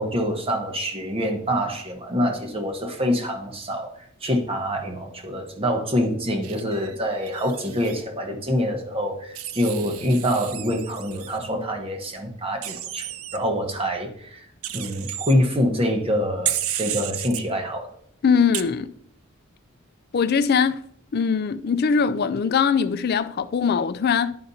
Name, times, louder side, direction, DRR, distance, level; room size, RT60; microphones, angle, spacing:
voice 1, 0.0-3.9 4.2-14.5 14.7-17.9, equal, 25° right, 1.1 m, -25 dB
Wild animals, 6.4-8.0 9.4-11.4 12.6-13.4 14.6-15.3 16.5-17.4 18.5-18.6, right 11 dB, 85° right, 0.5 m, -32 dB
voice 2, 18.2-18.9 20.1-20.8 21.1-24.4, left 6 dB, 50° left, 0.4 m, -21 dB
11.5 x 5.1 x 2.7 m
head